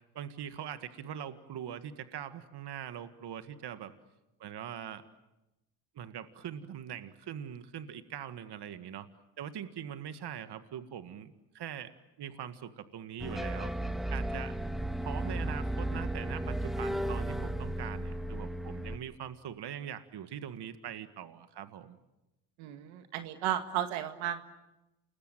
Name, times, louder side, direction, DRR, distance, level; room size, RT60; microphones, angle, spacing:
voice 1, 0.1-3.9 4.4-5.0 6.0-9.1 9.4-11.9 12.2-13.7 14.1-14.5 15.0-22.0, right 9 dB, 55° right, 11 dB, 1.9 m, -42 dB
sound 1, 13.2-19.0, right 1 dB, ahead, 1.8 m, -34 dB
voice 2, 22.6-24.4, right 11 dB, 80° right, 9 dB, 2.0 m, -34 dB
28.5 x 21.0 x 9.1 m, 0.97 s
supercardioid pair, 75°, 48 cm